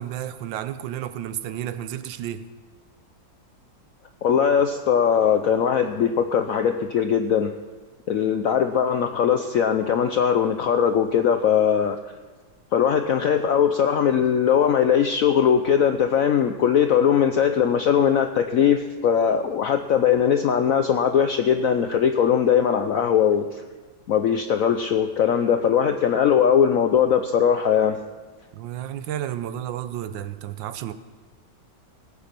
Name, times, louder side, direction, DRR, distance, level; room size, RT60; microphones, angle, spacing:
voice 1, 0.0-2.5 28.5-30.9, right 11 dB, 75° right, 12 dB, 1.3 m, -32 dB
voice 2, 4.2-7.5 8.1-12.0 12.7-23.5 24.1-28.0, left 8 dB, 75° left, 7 dB, 0.8 m, -20 dB
18.5 x 8.4 x 5.9 m, 1.3 s
omnidirectional pair, 2.1 m